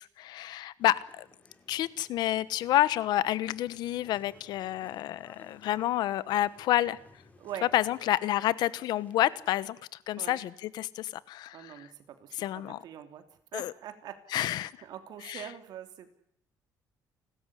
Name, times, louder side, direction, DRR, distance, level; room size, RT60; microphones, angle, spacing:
voice 1, 0.2-1.2 1.7-7.0 7.7-9.8 10.1-11.9 12.3-12.8 13.5-13.7 14.3-14.7 15.2-15.5, left 14 dB, 75° left, 19 dB, 1.1 m, -29 dB
sound 1, 0.8-9.5, left 2 dB, 20° left, 4.6 m, -59 dB
voice 2, 11.5-13.2 13.5-14.2 14.8-16.1, right 10 dB, 70° right, 8 dB, 3.1 m, -43 dB
30.0 x 13.5 x 10.0 m, 0.73 s
cardioid pair, 125°, 7 cm